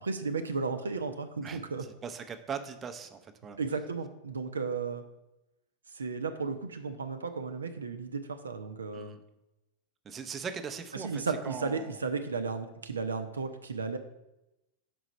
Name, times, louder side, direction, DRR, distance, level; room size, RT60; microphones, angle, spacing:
voice 1, 0.0-1.8 3.6-5.0 5.9-9.2 10.9-14.0, right 4 dB, 75° right, 8 dB, 0.6 m, -34 dB
voice 2, 2.0-3.6 8.9-9.2 10.0-12.0, right 6 dB, 20° right, 7 dB, 0.6 m, -40 dB
6.1 x 4.9 x 5.4 m, 0.91 s
figure-of-eight pair, 90°, 0 cm